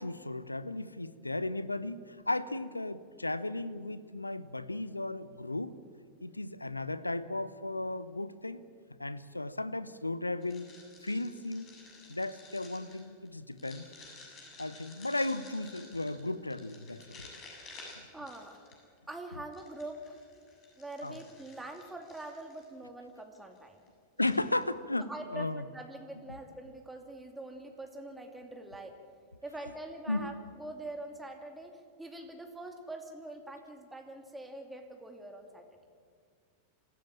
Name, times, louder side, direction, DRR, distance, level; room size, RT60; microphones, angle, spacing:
voice 1, 0.0-5.7 6.2-8.6 9.0-10.7 11.0-11.7 12.1-13.8 14.6-17.2 21.0-21.2 24.2-25.6 30.1-30.3, left 2 dB, 85° left, 16 dB, 0.8 m, -35 dB
sound 1, 10.4-19.0 19.5-22.7 23.3-23.6 23.9-24.0 24.2-24.6, left 3 dB, 35° left, 7.5 m, -53 dB
voice 2, 18.1-18.7 19.1-20.2 20.8-23.8 25.0-29.0 29.4-35.7, right 2 dB, 5° right, 3 dB, 2.5 m, -44 dB
26.0 x 16.0 x 8.8 m, 2.1 s
figure-of-eight pair, 90°, 0 cm